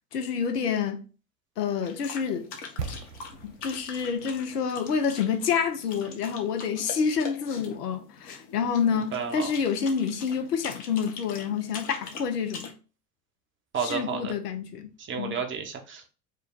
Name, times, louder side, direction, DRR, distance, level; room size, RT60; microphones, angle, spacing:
voice 1, 0.1-1.0 1.6-2.5 3.6-12.7 13.8-15.3, left 6 dB, 75° left, 0.8 m, -28 dB
sound 1, 1.8-12.7, left 5 dB, 50° left, 1.1 m, -43 dB
sound 2, 2.8-6.7 7.0-7.1, right 5 dB, 90° right, 0.7 m, -41 dB
voice 2, 9.1-9.5 13.7-14.3 15.0-16.1, right 6 dB, 25° right, 0.8 m, -31 dB
4.9 x 2.2 x 3.6 m
figure-of-eight pair, 80°, 47 cm